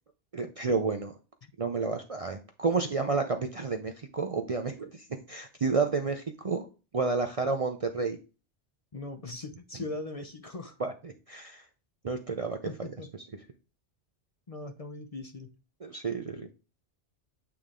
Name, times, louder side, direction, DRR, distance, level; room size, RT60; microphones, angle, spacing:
voice 1, 0.3-1.1 1.6-6.7 6.9-8.2 10.8-11.6 12.0-12.6 15.8-16.5, right 4 dB, 40° right, 0.5 m, -30 dB
voice 2, 8.9-10.8 12.6-13.1 14.5-15.6, left 2 dB, 40° left, 0.7 m, -40 dB
8.7 x 3.4 x 3.7 m
omnidirectional pair, 1.2 m